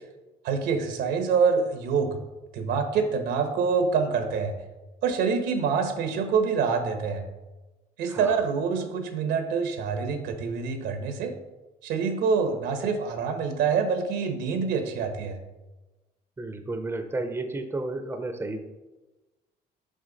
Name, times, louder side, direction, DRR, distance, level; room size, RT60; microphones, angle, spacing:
voice 1, 0.4-2.2 2.5-4.5 5.0-7.2 8.0-11.3 11.8-15.4, right 5 dB, 80° right, 6 dB, 1.2 m, -26 dB
voice 2, 8.1-8.4 16.4-18.6, right 2 dB, 15° right, 7 dB, 0.6 m, -32 dB
6.4 x 5.7 x 4.0 m, 1.1 s
cardioid pair, 110°, 17 cm